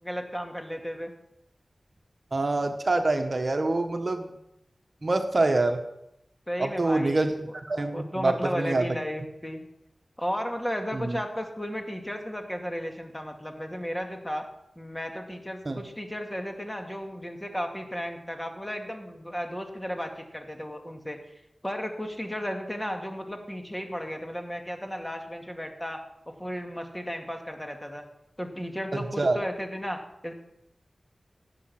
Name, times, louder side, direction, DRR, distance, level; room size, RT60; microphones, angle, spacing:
voice 1, 0.0-1.1 6.5-7.5 7.9-9.6 10.2-14.5 14.8-21.2 21.6-28.1 28.4-30.3, equal, 15° left, 3 dB, 2.3 m, -34 dB
voice 2, 2.3-4.4 5.0-5.8 6.6-7.3 7.7-8.8 10.9-11.2 15.6-15.8 28.9-29.4, right 2 dB, 50° right, 6 dB, 1.2 m, -26 dB
18.0 x 7.7 x 6.0 m, 0.82 s
wide cardioid pair, 50°, 0 cm